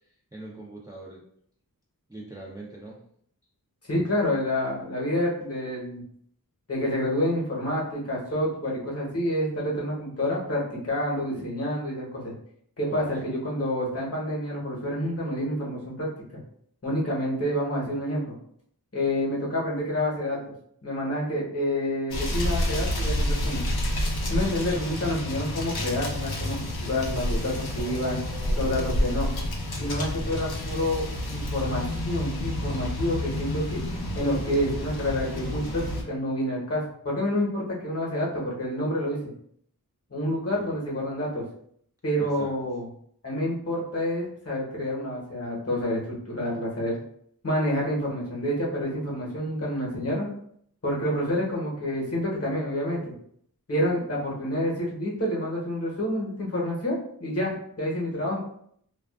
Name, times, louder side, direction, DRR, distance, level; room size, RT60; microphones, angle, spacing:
voice 1, 0.3-1.2 2.1-3.0 12.9-13.2 27.8-28.8 40.5-40.8 42.2-42.5, right 2 dB, 10° right, -3 dB, 0.5 m, -42 dB
voice 2, 3.9-6.0 6.7-12.3 12.8-16.1 16.8-18.2 18.9-20.4 20.8-23.6 24.3-28.2 28.6-29.3 29.8-33.8 34.1-39.2 40.1-41.4 42.0-42.8 43.2-47.0 47.4-50.3 50.8-53.1 53.7-58.4, left 1 dB, 40° left, -4 dB, 1.0 m, -28 dB
sound 1, 22.1-36.0, left 1 dB, 85° left, 0.5 m, -29 dB
2.3 x 2.3 x 2.3 m, 0.65 s
wide cardioid pair, 50°, 37 cm